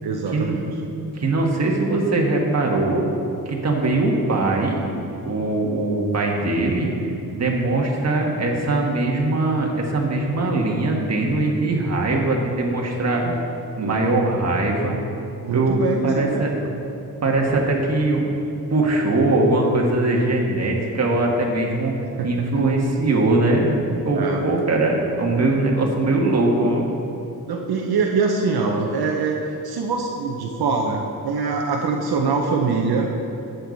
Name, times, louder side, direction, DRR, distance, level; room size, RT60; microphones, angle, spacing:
voice 1, 0.0-0.7 13.0-13.4 13.8-14.0 15.4-16.5 22.2-22.5 24.1-24.4 27.5-33.3, right 4 dB, 80° right, 1 dB, 0.9 m, -24 dB
voice 2, 1.1-3.0 3.4-4.8 5.2-6.9 7.3-13.2 13.8-15.0 15.5-16.7 17.2-18.3 18.7-21.9 22.2-26.9, right 2 dB, 45° right, -1 dB, 1.6 m, -21 dB
11.5 x 8.1 x 4.1 m, 2.9 s
wide cardioid pair, 120°, 37 cm